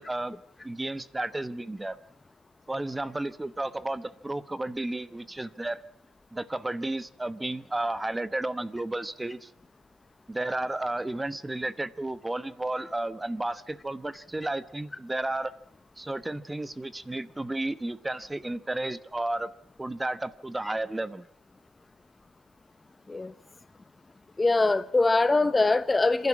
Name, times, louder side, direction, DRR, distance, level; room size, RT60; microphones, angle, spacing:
voice 1, 0.0-2.0 2.7-5.8 6.3-9.5 10.3-15.5 16.0-19.5 19.8-21.3, right 2 dB, 15° right, 1.1 m, -32 dB
voice 2, 24.4-26.3, left 3 dB, 20° left, 0.8 m, -23 dB
26.0 x 11.5 x 9.7 m
cardioid pair, 90°, 0 cm